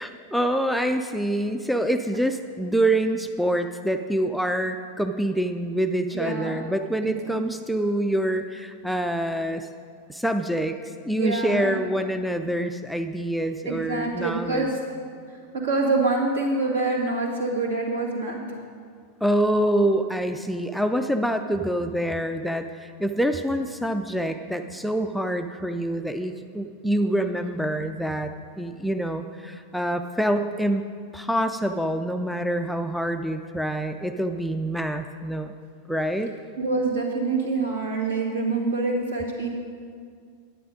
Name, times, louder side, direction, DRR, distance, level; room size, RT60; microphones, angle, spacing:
voice 1, 0.0-9.7 10.1-14.7 19.2-28.3 28.6-30.8 31.1-35.5 35.9-36.3, right 1 dB, ahead, 7 dB, 0.4 m, -26 dB
voice 2, 6.1-6.6 7.0-7.5 11.1-11.7 13.6-14.8 15.3-18.6 36.6-39.5, right 3 dB, 70° right, -1 dB, 2.1 m, -26 dB
10.0 x 9.4 x 5.1 m, 2.1 s
figure-of-eight pair, 90°, 0 cm